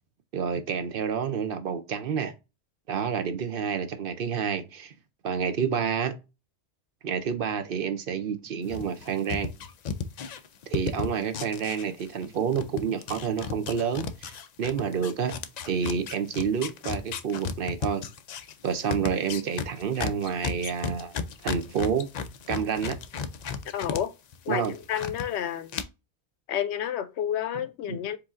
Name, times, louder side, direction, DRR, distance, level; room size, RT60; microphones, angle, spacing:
voice 1, 0.3-2.3 2.9-4.9 5.2-6.1 7.0-9.5 10.7-15.3 15.7-18.0 18.6-21.2 21.4-22.1 22.5-23.0 24.5-24.7 27.9-28.0, right 7 dB, 60° right, 0.8 m, -29 dB
sound 1, 8.7-12.3 12.5-24.0 24.3-25.2 25.7-25.8, left 6 dB, 55° left, 0.5 m, -34 dB
voice 2, 23.7-24.1 24.5-25.7 26.5-28.2, left 10 dB, 85° left, 0.9 m, -30 dB
4.8 x 2.7 x 3.6 m
omnidirectional pair, 1.1 m